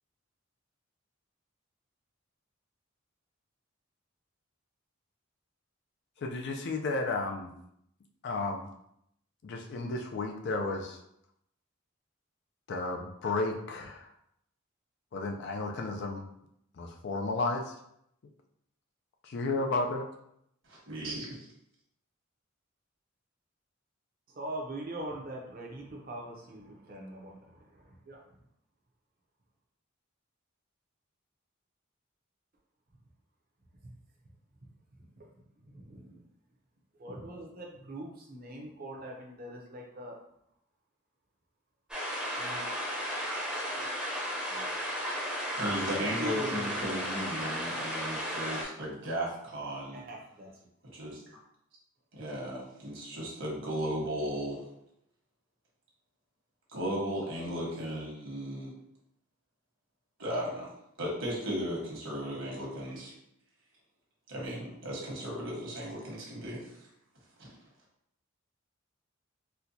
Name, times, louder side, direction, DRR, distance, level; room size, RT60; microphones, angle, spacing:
voice 1, 6.2-7.5 8.2-8.7 9.4-11.0 12.7-14.1 15.1-16.3 16.8-17.7 19.2-20.1, left 3 dB, 55° left, 3 dB, 0.4 m, -33 dB
voice 2, 20.7-21.4 45.6-50.0 50.9-51.2 52.1-54.6 56.7-58.7 60.2-60.7 61.0-63.1 64.3-66.7 67.4-67.5, equal, 65° right, -4 dB, 1.3 m, -35 dB
voice 3, 24.3-28.2 33.8-33.9 35.0-35.3 35.6-36.2 37.0-40.2 42.4-42.6 44.5-44.7 45.9-46.9 49.9-50.5, right 1 dB, 45° right, 0 dB, 0.7 m, -42 dB
sound 1, 41.9-48.6, equal, 5° right, 0.7 m, -34 dB
4.3 x 2.2 x 2.7 m, 0.76 s
head